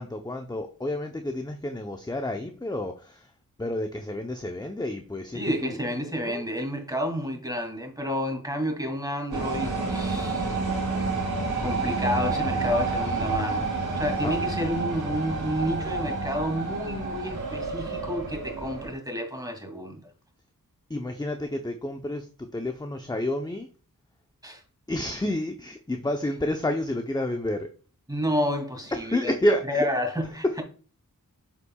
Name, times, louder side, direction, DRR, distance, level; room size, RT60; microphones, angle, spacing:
voice 1, 0.0-3.3 3.6-5.8 6.2-6.4 14.2-14.3 20.9-23.7 24.9-27.7 28.9-29.9, left 1 dB, 10° left, 0.7 m, -30 dB
voice 2, 5.3-10.6 11.6-13.7 14.0-20.0 24.4-24.6 28.1-29.3 29.7-30.6, equal, 10° right, 2.5 m, -30 dB
sound 1, 9.3-18.9, right 3 dB, 80° right, 2.4 m, -29 dB
7.0 x 6.7 x 2.3 m
cardioid pair, 45°, 37 cm